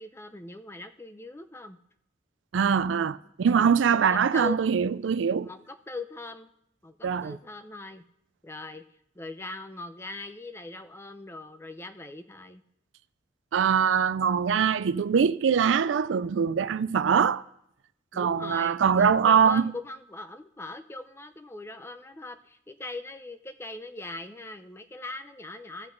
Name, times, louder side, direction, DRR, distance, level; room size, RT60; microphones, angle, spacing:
voice 1, 0.0-1.8 3.5-4.6 5.4-6.5 6.8-8.0 8.4-8.8 9.2-12.6 18.1-25.9, left 2 dB, 15° left, 0.6 m, -40 dB
voice 2, 2.5-5.5 7.0-7.4 13.5-17.4 18.1-19.6, right 7 dB, 85° right, 0.4 m, -23 dB
16.0 x 5.8 x 3.8 m
head